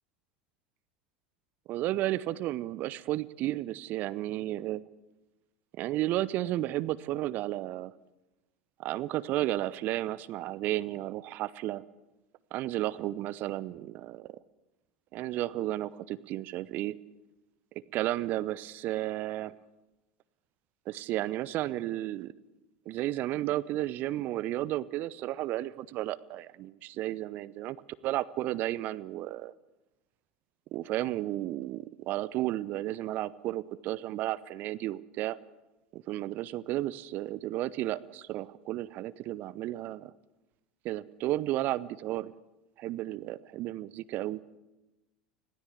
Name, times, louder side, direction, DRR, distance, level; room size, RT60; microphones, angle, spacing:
voice 1, 1.7-4.8 5.8-7.9 8.8-11.8 12.5-14.4 15.1-17.0 17.9-19.5 20.9-22.3 22.9-27.8 28.0-29.5 30.7-35.4 35.9-40.1 40.8-42.3 42.8-44.4, right 15 dB, 45° right, 18 dB, 0.7 m, -33 dB
25.5 x 16.5 x 8.3 m, 1.0 s
figure-of-eight pair, 75°, 4 cm